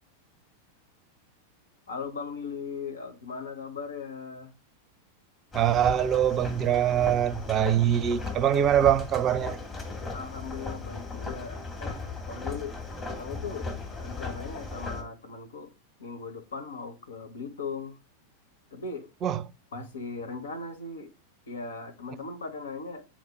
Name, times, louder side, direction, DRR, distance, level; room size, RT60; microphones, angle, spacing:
voice 1, 1.9-4.5 10.1-12.8 13.2-13.7 14.0-15.7 16.0-18.0 18.7-19.1 19.7-21.1 21.5-23.1, left 4 dB, 65° left, 1.4 m, -38 dB
sound 1, 5.5-15.0, left 3 dB, 20° left, 2.3 m, -37 dB
voice 2, 5.5-9.6 19.2-19.4, right 10 dB, 30° right, 0.6 m, -23 dB
8.6 x 4.5 x 4.4 m
figure-of-eight pair, 90°, 0 cm